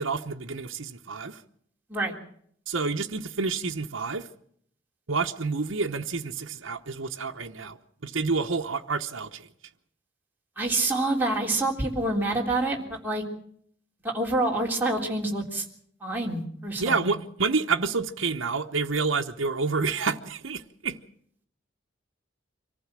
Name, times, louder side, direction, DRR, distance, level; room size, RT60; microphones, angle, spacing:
voice 1, 0.0-1.4 2.7-4.3 5.1-9.5 16.8-21.0, right 4 dB, 85° right, 1.0 m, -28 dB
voice 2, 10.6-13.2 14.0-15.7 16.0-17.0, right 2 dB, 10° right, 3.5 m, -27 dB
25.0 x 15.0 x 7.5 m
head